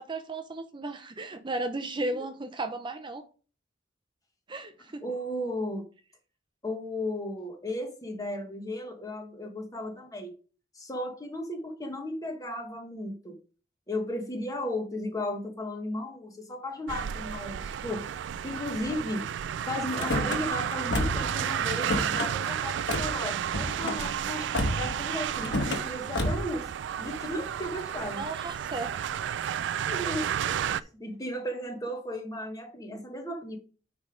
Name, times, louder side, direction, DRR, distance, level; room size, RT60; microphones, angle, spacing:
voice 1, 0.0-3.2 4.5-5.0 28.1-28.9 30.5-30.9, right 2 dB, 25° right, 8 dB, 0.6 m, -35 dB
voice 2, 5.0-5.9 6.6-10.3 10.7-13.4 13.9-18.0 18.4-19.3 19.7-24.5 24.8-26.7 27.0-28.2 29.6-30.3 30.7-33.6, left 1 dB, 20° left, 4 dB, 1.2 m, -35 dB
sound 1, 16.9-30.8, right 9 dB, 80° right, 0.3 m, -32 dB
Car / Slam, 19.9-20.4 20.9-21.3 21.6-22.3 22.9-23.1 23.5-24.0 24.5-25.0 25.4-25.8 26.1-26.5, left 1 dB, 75° left, 1.3 m, -29 dB
9.3 x 3.4 x 5.0 m, 0.37 s
head